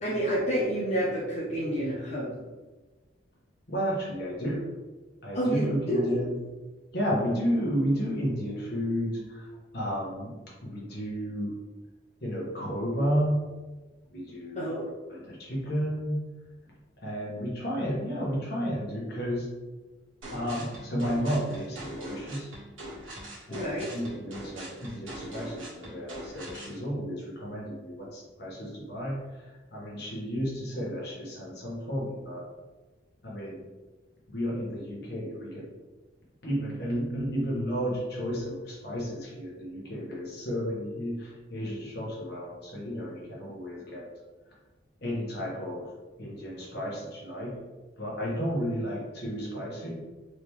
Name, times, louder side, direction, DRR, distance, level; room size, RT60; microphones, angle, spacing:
voice 1, 0.0-2.4 5.3-6.0 14.6-14.9 23.5-23.9, right 1 dB, 35° left, -7 dB, 0.7 m, -29 dB
voice 2, 3.7-4.7 5.2-6.3 6.9-9.5 9.7-10.3 10.6-11.6 12.2-13.5 14.1-14.7 15.1-16.3 17.0-19.5 20.3-22.5 23.5-32.4 33.2-33.6 34.3-35.7 36.4-44.0 45.0-45.9 46.2-47.6 48.0-50.1, equal, 55° left, -5 dB, 1.4 m, -32 dB
sound 1, 20.2-26.8, right 1 dB, 85° right, 1.4 m, -42 dB
3.9 x 3.5 x 3.2 m, 1.2 s
head